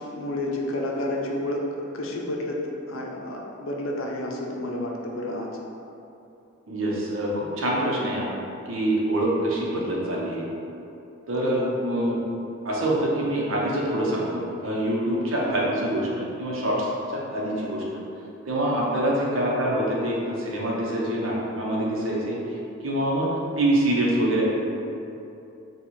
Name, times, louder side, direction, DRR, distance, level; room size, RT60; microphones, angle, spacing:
voice 1, 0.0-5.5 11.4-11.7 15.4-15.7 19.3-19.5, left 1 dB, 70° left, -1 dB, 0.6 m, -30 dB
voice 2, 6.7-8.3 8.7-10.4 11.3-12.2 12.6-18.0 18.5-22.4 22.8-23.3 23.6-24.4, right 1 dB, 70° right, -4 dB, 0.8 m, -25 dB
4.6 x 2.3 x 4.1 m, 2.8 s
head